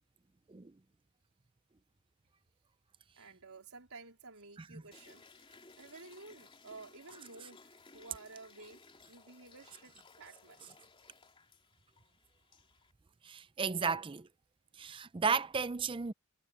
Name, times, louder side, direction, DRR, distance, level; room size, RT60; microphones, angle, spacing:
voice 1, 3.2-8.8 9.1-10.8, right 3 dB, 75° right, 4.0 m, -53 dB
sound 1, 4.9-12.9, left 3 dB, 25° left, 3.2 m, -60 dB
voice 2, 13.3-14.3 14.8-16.1, right 5 dB, 25° right, 0.4 m, -33 dB
head